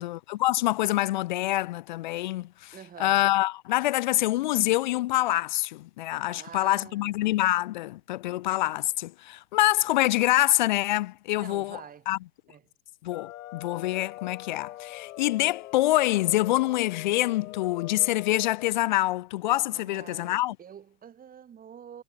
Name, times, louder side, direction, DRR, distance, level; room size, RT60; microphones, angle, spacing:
voice 1, 0.0-2.7 3.0-11.8 12.1-12.2 13.0-20.5, left 16 dB, 30° left, 0.5 m, -26 dB
voice 2, 2.7-3.2 6.3-7.2 11.4-12.1 12.5-12.6 19.7-22.0, right 8 dB, 15° right, 3.2 m, -47 dB
sound 1, 13.1-18.7, left 14 dB, 55° left, 4.2 m, -43 dB
hypercardioid pair, 120°, 49 cm